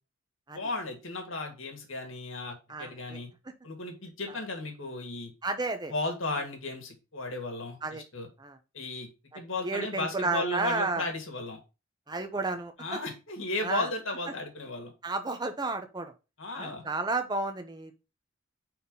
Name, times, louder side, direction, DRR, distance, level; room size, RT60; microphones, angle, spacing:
voice 1, 0.5-3.3 3.6-5.3 5.9-8.3 8.7-9.1 9.3-11.6 12.8-14.9 16.4-16.8, left 2 dB, 70° left, 3 dB, 2.2 m, -35 dB
voice 2, 2.7-3.2 5.4-5.9 7.8-8.0 8.4-8.6 9.6-11.0 12.1-13.0 13.6-13.9 15.0-16.1 16.6-18.0, right 3 dB, 20° right, 7 dB, 0.9 m, -32 dB
5.6 x 4.4 x 5.4 m, 0.29 s
head